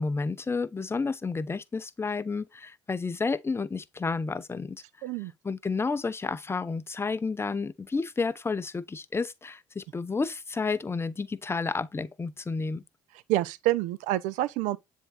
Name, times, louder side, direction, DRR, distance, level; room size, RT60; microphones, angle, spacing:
voice 1, 0.0-4.8 5.4-12.8, left 4 dB, 15° left, 0.7 m, -31 dB
voice 2, 5.0-5.3 13.3-14.8, right 15 dB, 60° right, 0.7 m, -27 dB
9.8 x 3.8 x 4.1 m
figure-of-eight pair, 55°, 15 cm